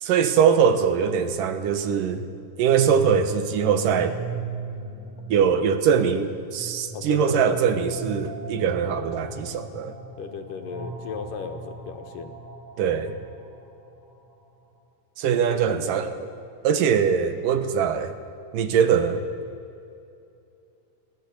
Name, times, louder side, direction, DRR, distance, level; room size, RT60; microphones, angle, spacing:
voice 1, 0.0-2.3 2.6-4.2 5.3-9.9 12.8-13.1 15.2-16.3 16.6-18.1 18.5-19.2, right 7 dB, 80° right, 9 dB, 2.9 m, -22 dB
sound 1, 2.6-14.5, right 2 dB, 50° right, 7.1 m, -38 dB
voice 2, 6.9-7.6 10.2-12.3 15.5-15.8, left 6 dB, 80° left, 7 dB, 3.0 m, -34 dB
21.5 x 16.5 x 8.5 m, 2.7 s
omnidirectional pair, 3.8 m